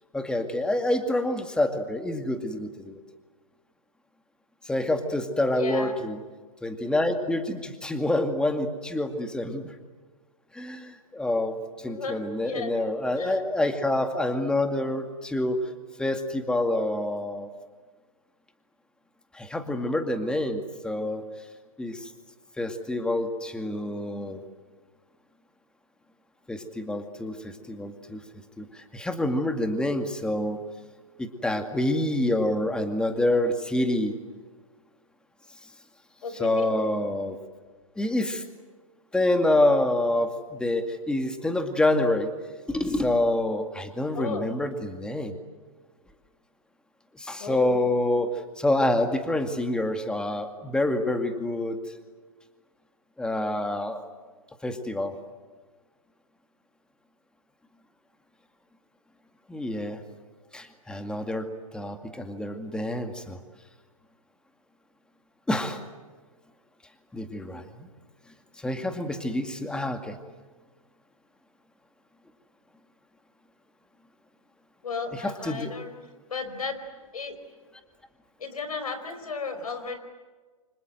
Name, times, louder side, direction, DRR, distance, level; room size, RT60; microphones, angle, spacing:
voice 1, 0.1-3.0 4.6-6.2 6.6-9.7 10.5-15.7 16.0-17.5 19.3-21.3 21.8-22.1 22.6-24.4 26.5-28.2 28.6-30.6 31.2-34.1 36.4-37.4 38.0-38.4 39.1-42.3 42.7-45.4 47.1-51.8 53.2-54.0 54.6-55.2 59.5-60.0 60.5-63.4 65.5-65.8 67.1-67.9 68.6-70.2 75.1-75.7, left 1 dB, 5° left, 7 dB, 2.2 m, -27 dB
voice 2, 5.5-6.0 11.8-12.7 13.2-13.4 36.2-36.8 44.1-44.5 47.4-47.9 74.8-76.0 76.3-76.8 77.1-77.4 78.4-80.0, left 4 dB, 85° left, 10 dB, 4.9 m, -34 dB
29.0 x 26.0 x 7.9 m, 1.4 s
hypercardioid pair, 130°, 18 cm